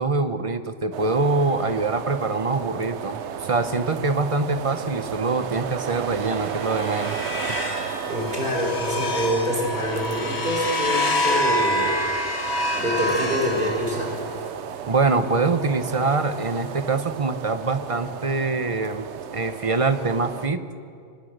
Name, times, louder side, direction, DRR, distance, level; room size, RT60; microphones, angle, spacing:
voice 1, 0.0-7.2 7.5-7.6 14.9-19.1 19.3-20.6, right 3 dB, 30° right, 10 dB, 1.0 m, -24 dB
sound 1, 0.9-20.5, right 9 dB, 70° right, 1.0 m, -34 dB
sound 2, 6.1-14.4, left 1 dB, 60° left, 2.0 m, -27 dB
voice 2, 8.0-12.3 12.7-14.2, equal, 45° right, -1 dB, 5.5 m, -26 dB
25.0 x 20.0 x 6.7 m, 2.4 s
omnidirectional pair, 1.2 m